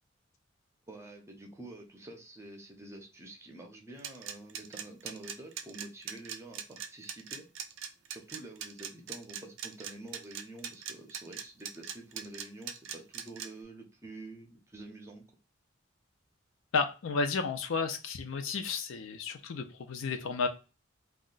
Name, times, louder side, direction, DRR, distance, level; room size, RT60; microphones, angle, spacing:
voice 1, 0.9-7.6 8.1-15.2, right 2 dB, 15° right, 2 dB, 0.5 m, -48 dB
sound 1, 4.0-13.5, right 8 dB, 70° right, 0.4 m, -40 dB
voice 2, 16.7-20.5, left 4 dB, 75° left, 6 dB, 0.5 m, -32 dB
2.3 x 2.1 x 3.7 m, 0.32 s
head